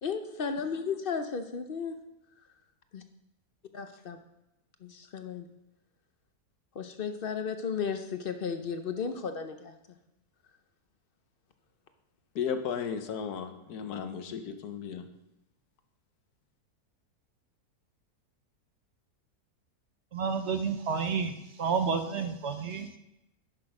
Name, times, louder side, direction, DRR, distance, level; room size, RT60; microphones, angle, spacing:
voice 1, 0.0-2.0 2.9-3.0 3.7-4.2 4.8-5.5 6.7-9.7, left 6 dB, 50° left, 8 dB, 0.7 m, -34 dB
voice 2, 12.3-15.1, left 7 dB, 90° left, 8 dB, 1.4 m, -34 dB
voice 3, 20.1-21.3 21.6-23.0, right 5 dB, 60° right, 8 dB, 0.8 m, -30 dB
11.0 x 6.1 x 4.9 m, 0.90 s
omnidirectional pair, 1.6 m